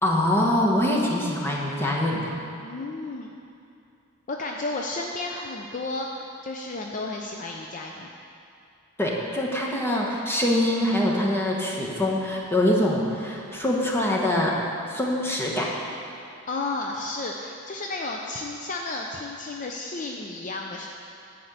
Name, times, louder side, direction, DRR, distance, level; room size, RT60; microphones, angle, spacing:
voice 1, 0.0-2.3 9.0-14.6 14.9-15.7, left 1 dB, 10° left, -3 dB, 1.2 m, -24 dB
voice 2, 2.6-3.3 4.3-8.1 16.5-20.9, left 2 dB, 40° left, 1 dB, 0.5 m, -32 dB
10.5 x 4.4 x 8.0 m, 2.6 s
head